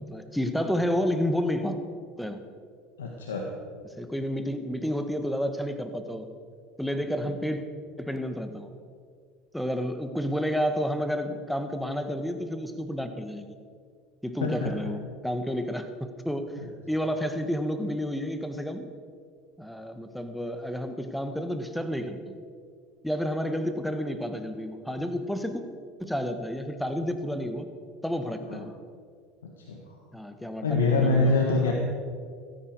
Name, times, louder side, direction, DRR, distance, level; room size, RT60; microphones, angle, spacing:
voice 1, 0.0-1.8 2.2-2.4 4.0-6.3 6.8-7.6 8.0-8.7 9.5-13.6 14.2-16.5 16.9-18.8 19.6-22.3 23.0-25.6 26.0-27.7 28.0-28.7 30.1-31.3 31.7-31.8, equal, ahead, 8 dB, 1.5 m, -30 dB
voice 2, 3.0-3.5 14.4-14.8 16.6-16.7 28.5-28.6 29.7-30.0 30.6-31.7, left 3 dB, 90° left, 0 dB, 1.6 m, -25 dB
16.0 x 14.0 x 4.7 m, 2.1 s
hypercardioid pair, 80°, 0 cm